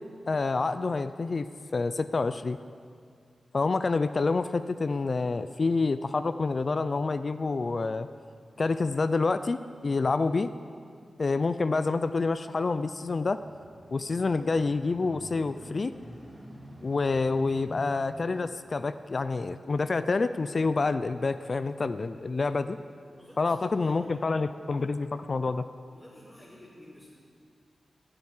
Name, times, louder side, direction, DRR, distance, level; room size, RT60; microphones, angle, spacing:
voice 1, 0.3-1.4 1.7-2.6 3.5-8.1 8.6-10.5 11.2-13.4 13.9-15.9 16.8-22.8 23.4-25.6, left 3 dB, 50° left, 12 dB, 0.5 m, -28 dB
sound 1, 13.3-21.6 22.2-22.3, equal, 5° right, 3.6 m, -50 dB
voice 2, 23.1-24.8 25.9-27.1, left 1 dB, 10° left, -10 dB, 4.2 m, -51 dB
13.0 x 10.5 x 9.8 m, 2.3 s
cardioid pair, 75°, 0 cm